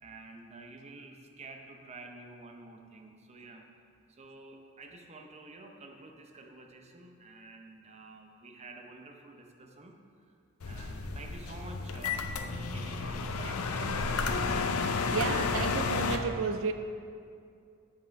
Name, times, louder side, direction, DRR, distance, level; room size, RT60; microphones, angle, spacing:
voice 1, 0.0-3.6 4.1-10.0 10.6-14.6, right 2 dB, 30° right, 0.7 m, -49 dB
sound 1, 10.6-16.2, left 4 dB, 80° left, 0.6 m, -32 dB
voice 2, 15.1-16.7, right 5 dB, 65° right, 0.4 m, -32 dB
7.9 x 5.8 x 5.2 m
head